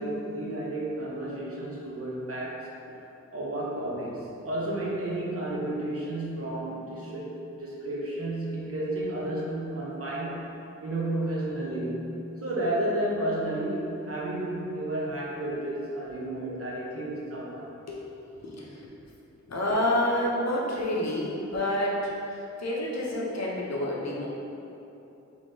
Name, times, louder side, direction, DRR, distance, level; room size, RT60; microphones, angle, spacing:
voice 1, 0.0-2.7 3.3-7.3 7.6-10.5 10.8-12.1 12.4-17.7, right 1 dB, 50° right, -5 dB, 0.8 m, -32 dB
voice 2, 18.4-18.9 19.5-24.3, left 1 dB, 65° left, -4 dB, 0.6 m, -28 dB
3.5 x 3.3 x 2.7 m, 2.9 s
wide cardioid pair, 75°, 29 cm